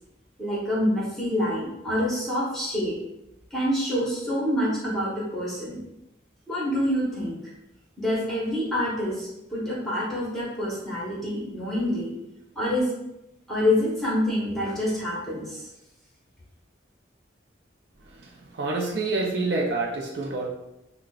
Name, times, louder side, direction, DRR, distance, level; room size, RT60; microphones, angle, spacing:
voice 1, 0.4-2.9 3.5-5.8 6.5-7.4 8.0-12.1 12.5-12.9 13.5-15.7, left 1 dB, ahead, -7 dB, 1.2 m, -26 dB
voice 2, 18.5-20.5, right 3 dB, 60° right, -1 dB, 0.5 m, -27 dB
5.9 x 2.2 x 2.4 m, 0.87 s
head